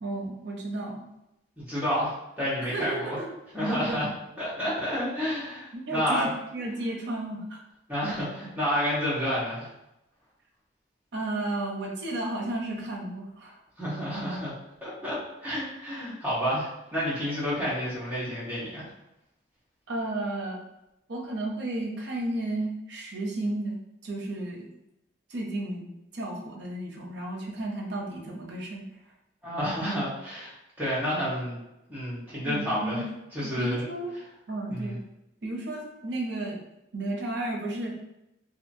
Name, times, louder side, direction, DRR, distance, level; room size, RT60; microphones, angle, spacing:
voice 1, 0.0-1.0 2.7-3.3 5.7-7.6 11.1-13.6 19.9-20.6 21.1-24.7 25.3-25.9 26.1-28.8 32.4-33.0 33.4-34.1 34.5-35.0 35.4-36.6 36.9-38.0, right 2 dB, 65° right, -1 dB, 0.6 m, -33 dB
voice 2, 1.6-3.2 3.5-6.3 7.9-9.7 13.8-14.5 14.8-18.8 29.4-31.6 31.9-33.0 33.3-33.8 34.7-34.9, equal, 10° right, -10 dB, 1.0 m, -30 dB
2.7 x 2.5 x 2.6 m, 0.87 s
head